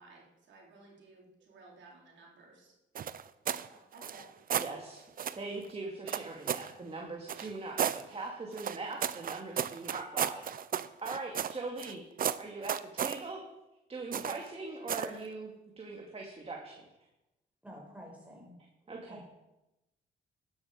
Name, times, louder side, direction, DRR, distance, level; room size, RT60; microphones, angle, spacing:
voice 1, 0.0-2.7 3.6-4.3, right 3 dB, 65° right, -2 dB, 3.8 m, -56 dB
sound 1, 3.0-3.7 4.0-4.7 5.2-5.4 6.1-6.7 7.3-8.0 8.6-11.9 12.2-13.2 14.1-14.5 14.9-15.2, right 8 dB, 45° right, 0.6 m, -34 dB
voice 2, 4.5-5.0 5.4-7.8 8.1-10.4 10.7-12.0 12.4-13.4 13.9-16.8 18.9-19.2, right 3 dB, 30° right, 0 dB, 2.2 m, -41 dB
voice 3, 17.6-18.5 18.8-19.2, equal, 5° right, -2 dB, 5.3 m, -50 dB
12.5 x 9.7 x 5.0 m, 0.96 s
cardioid pair, 90°, 20 cm